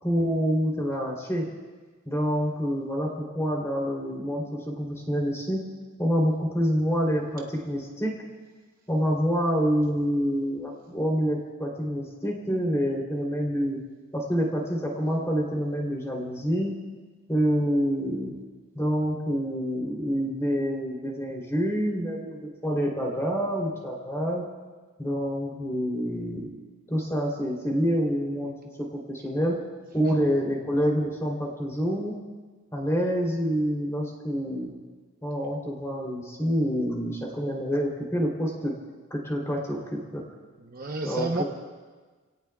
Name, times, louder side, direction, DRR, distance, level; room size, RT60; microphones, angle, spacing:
voice 1, 0.0-1.5 2.0-5.6 6.0-8.1 8.9-13.8 14.1-16.8 17.3-18.3 18.7-24.4 25.0-26.5 26.9-29.6 29.9-32.2 32.7-34.7 35.2-38.7 39.1-40.2 41.0-41.4, equal, 15° left, -2 dB, 3.2 m, -27 dB
voice 2, 40.6-41.4, right 2 dB, 40° right, 2 dB, 0.9 m, -31 dB
30.0 x 17.5 x 2.3 m, 1.4 s
head